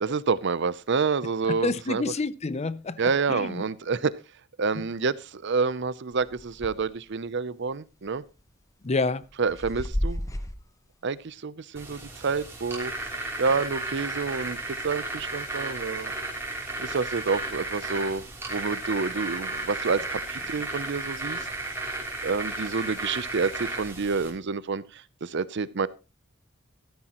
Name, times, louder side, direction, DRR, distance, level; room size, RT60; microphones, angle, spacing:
voice 1, 0.0-2.1 3.0-4.1 4.6-8.2 9.4-10.2 11.0-12.9 13.4-16.1 16.8-18.2 18.5-21.4 22.2-25.9, right 4 dB, 60° right, 0.6 m, -28 dB
voice 2, 1.5-3.0 3.3-3.6 8.8-9.2, left 3 dB, 30° left, 0.6 m, -28 dB
sound 1, 6.2-6.9 7.3-7.4 8.1-8.4 9.0-10.6, equal, 15° left, 1.0 m, -32 dB
sound 2, 11.7-24.3, right 2 dB, 10° right, 3.3 m, -34 dB
14.0 x 13.0 x 3.0 m
head